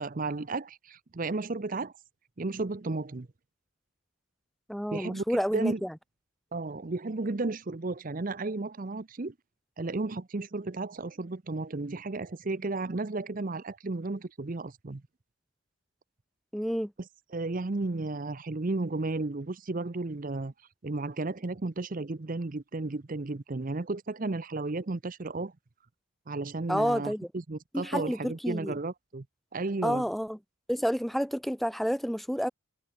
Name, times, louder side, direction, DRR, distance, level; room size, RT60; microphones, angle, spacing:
voice 1, 0.0-1.9 2.4-3.3 4.9-5.8 6.5-9.3 9.8-15.0 17.3-25.5 26.3-29.2 29.5-30.1, right 3 dB, 40° right, 0.6 m, -33 dB
voice 2, 4.7-5.9 16.5-16.9 26.7-27.3 27.7-28.7 29.8-30.4 30.7-32.5, equal, ahead, 1.1 m, -29 dB
head